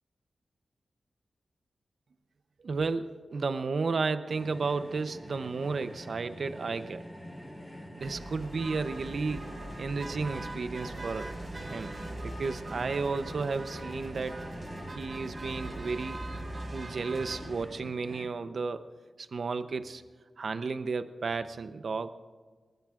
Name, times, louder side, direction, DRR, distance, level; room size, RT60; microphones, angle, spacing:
voice 1, 2.6-7.0 8.0-9.5 9.8-11.3 11.6-11.9 12.4-14.3 14.9-16.2 16.7-18.9 19.2-20.0 20.4-22.1, right 4 dB, 65° right, 11 dB, 0.7 m, -33 dB
sound 1, 4.3-18.3, equal, 5° left, 4.9 m, -45 dB
sound 2, 8.0-17.7, right 2 dB, 50° right, 3.3 m, -42 dB
22.5 x 19.5 x 2.5 m, 1.4 s
cardioid pair, 50°, 0 cm